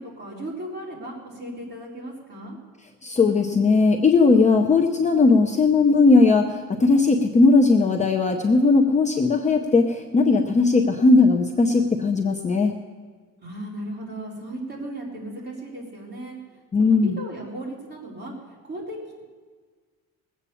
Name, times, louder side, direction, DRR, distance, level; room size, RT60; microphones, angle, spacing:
voice 1, 0.0-2.6 13.4-16.4 16.8-18.3 18.6-19.2, right 1 dB, 30° right, -4 dB, 4.2 m, -36 dB
voice 2, 3.0-12.7 16.7-17.2, left 3 dB, 20° left, 3 dB, 0.7 m, -18 dB
20.0 x 8.5 x 7.0 m, 1.5 s
cardioid pair, 160°, 33 cm